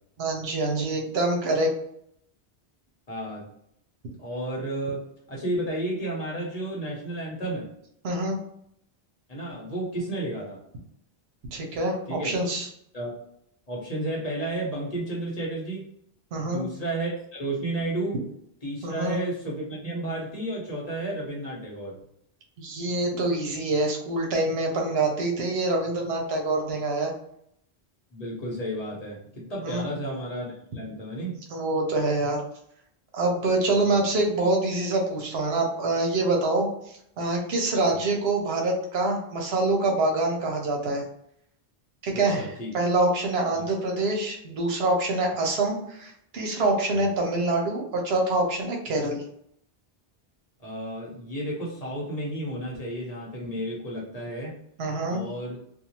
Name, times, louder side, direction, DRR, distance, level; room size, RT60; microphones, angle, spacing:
voice 1, 0.2-1.7 8.0-8.4 11.5-12.7 16.3-16.6 18.8-19.2 22.6-27.1 29.6-29.8 31.5-32.4 33.1-41.0 42.0-42.5 42.7-49.2 54.8-55.2, right 2 dB, 75° right, 0 dB, 1.0 m, -25 dB
voice 2, 3.1-3.5 4.2-7.7 9.3-10.6 12.1-12.3 12.9-13.1 13.7-15.9 16.4-18.2 18.6-22.0 28.1-31.4 33.7-34.0 37.9-38.0 42.1-42.7 43.5-43.6 45.3-45.5 46.9-47.1 50.6-54.6 55.1-55.6, right 1 dB, 40° left, -4 dB, 0.9 m, -32 dB
2.6 x 2.3 x 2.9 m, 0.71 s
omnidirectional pair, 1.0 m